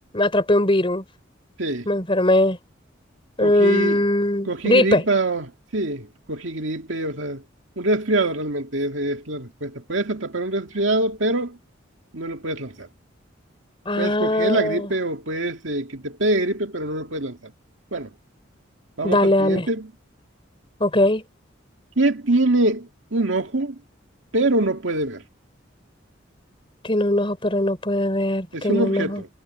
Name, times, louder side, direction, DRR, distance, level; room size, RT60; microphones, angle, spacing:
voice 1, 0.1-1.0 1.9-2.6 3.4-5.0 13.9-14.9 19.0-19.7 20.8-21.2 26.8-29.2, left 1 dB, 25° left, 4.2 m, -20 dB
voice 2, 3.4-4.0 4.5-7.4 7.8-11.6 12.1-12.9 14.0-17.4 17.9-18.1 19.0-19.9 22.0-23.8 24.3-25.2 28.5-29.3, right 2 dB, 70° right, 2.4 m, -24 dB
head